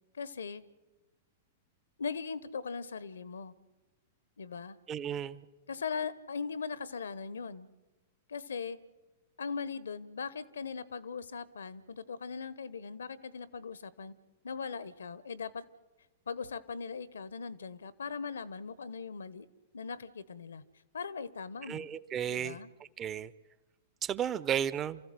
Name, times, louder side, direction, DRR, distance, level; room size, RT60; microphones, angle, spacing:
voice 1, 0.1-0.6 2.0-3.5 4.4-4.8 5.7-7.7 8.3-8.8 9.4-14.1 14.4-15.6 16.3-19.5 19.7-20.6 20.9-21.9 22.3-22.7, left 5 dB, 75° left, 19 dB, 1.1 m, -39 dB
voice 2, 4.9-5.4 21.7-22.6 23.0-23.3 24.0-25.0, right 9 dB, 25° right, 17 dB, 0.9 m, -33 dB
29.0 x 14.5 x 7.7 m, 1.1 s
figure-of-eight pair, 105°, 0 cm